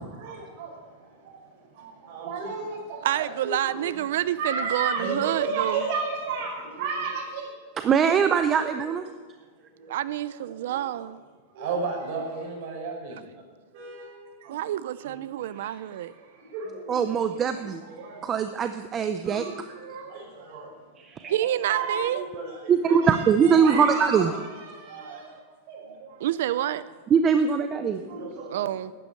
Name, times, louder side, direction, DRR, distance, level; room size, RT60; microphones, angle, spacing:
voice 1, 0.2-3.8 4.4-7.5 8.7-8.9 9.6-9.9 10.5-11.0 11.5-13.4 13.7-14.1 14.4-14.5 15.0-15.2 15.5-18.3 19.0-20.7 21.2-21.3 21.6-24.2 24.5-25.4 25.7-26.3 27.9-28.7, right 4 dB, 45° right, 5.4 m, -34 dB
voice 2, 3.0-5.8 9.9-11.2 14.5-16.1 21.3-22.2 26.2-26.8 28.5-28.9, right 12 dB, 65° right, 0.5 m, -28 dB
voice 3, 7.8-9.1 16.9-17.8 18.2-19.5 21.0-21.3 22.7-24.3 27.1-28.0, right 6 dB, 20° right, 0.5 m, -22 dB
12.0 x 9.3 x 9.7 m
supercardioid pair, 165°, 0 cm